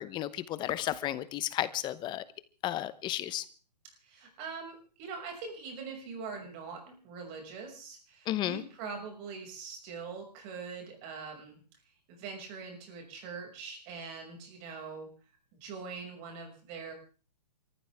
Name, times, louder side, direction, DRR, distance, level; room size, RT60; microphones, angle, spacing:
voice 1, 0.0-2.2 2.6-3.4 8.3-8.6, left 13 dB, 20° left, 16 dB, 0.9 m, -33 dB
voice 2, 4.0-11.6 12.1-15.1 15.5-16.9, right 5 dB, 35° right, 3 dB, 6.1 m, -43 dB
28.5 x 14.5 x 3.6 m, 0.38 s
hypercardioid pair, 140°, 21 cm